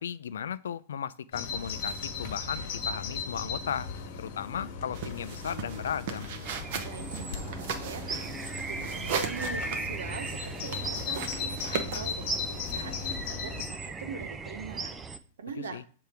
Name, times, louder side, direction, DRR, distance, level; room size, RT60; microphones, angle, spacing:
voice 1, 0.0-3.9 4.2-6.3 15.6-15.8, left 8 dB, 85° left, 17 dB, 0.4 m, -36 dB
Bird vocalization bird call bird song, 1.3-13.7, left 5 dB, 55° left, 1.3 m, -37 dB
sound 1, 4.9-13.2, right 6 dB, 60° right, 0.9 m, -38 dB
sound 2, 6.4-15.2, right 3 dB, 15° right, 0.4 m, -38 dB
voice 2, 6.8-8.2 8.7-15.9, right 5 dB, 85° right, 8 dB, 0.9 m, -42 dB
6.7 x 3.4 x 4.5 m, 0.42 s
hypercardioid pair, 135°, 0 cm